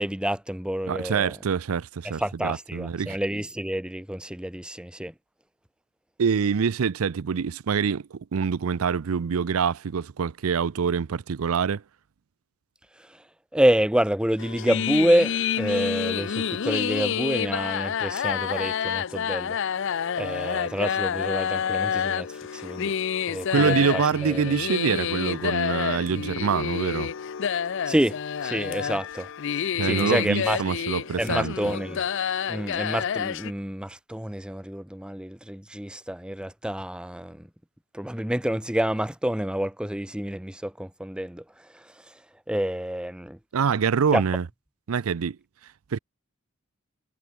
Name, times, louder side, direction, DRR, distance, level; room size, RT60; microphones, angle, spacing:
voice 1, 0.0-1.3 2.2-5.1 13.5-19.6 20.2-22.9 23.3-24.6 27.9-29.3 29.5-30.6 31.2-32.0 32.5-37.5 37.9-41.4 41.7-41.8 42.5-43.4 44.1-44.2, equal, 5° right, 0.8 m, -28 dB
voice 2, 0.9-3.2 6.2-11.8 23.5-27.1 29.7-31.5 43.5-44.4 44.9-45.4 45.9-46.0, right 6 dB, 85° right, 0.5 m, -25 dB
sound 1, 14.4-33.5, left 8 dB, 60° left, 0.5 m, -28 dB
head